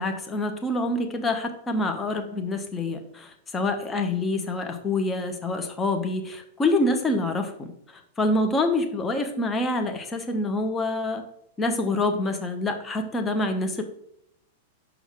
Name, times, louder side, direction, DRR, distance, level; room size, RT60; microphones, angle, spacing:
voice 1, 0.0-3.3 3.5-7.7 8.2-11.2 11.6-13.8, left 2 dB, 15° left, 5 dB, 0.8 m, -26 dB
5.9 x 5.4 x 3.6 m, 0.74 s
figure-of-eight pair, 95°, 0 cm